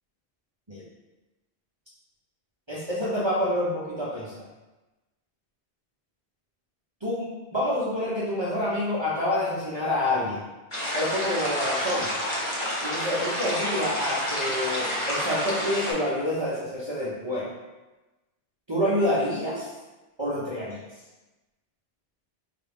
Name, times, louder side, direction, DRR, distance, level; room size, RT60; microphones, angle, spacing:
voice 1, 2.7-4.4 7.0-10.4 10.9-12.1 12.8-17.5 18.7-19.7 20.2-20.8, left 1 dB, 30° right, -8 dB, 0.6 m, -27 dB
sound 1, 10.7-15.9, equal, 30° left, 0.9 m, -29 dB
4.8 x 2.3 x 3.4 m, 1.1 s
omnidirectional pair, 1.2 m